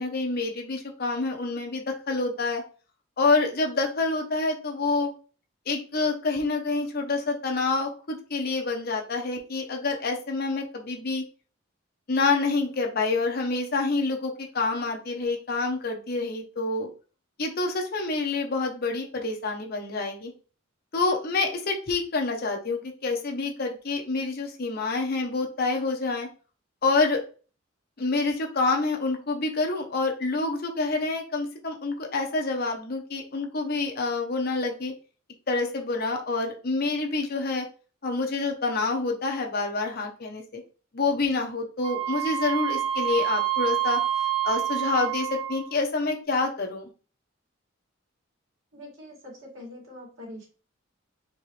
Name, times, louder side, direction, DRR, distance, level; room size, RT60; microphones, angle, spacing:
voice 1, 0.0-2.6 3.2-5.1 5.7-11.2 12.1-16.9 17.4-20.3 20.9-26.3 26.8-27.2 28.0-34.9 35.5-37.6 38.0-40.6 40.9-44.0 44.4-46.8, left 3 dB, 50° left, 2 dB, 0.9 m, -27 dB
Wind instrument woodwind instrument, 41.8-45.7, right 12 dB, 30° right, 0.4 m, -27 dB
voice 2, 48.7-50.5, left 1 dB, 80° right, -3 dB, 2.3 m, -43 dB
4.5 x 3.1 x 3.2 m, 0.37 s
head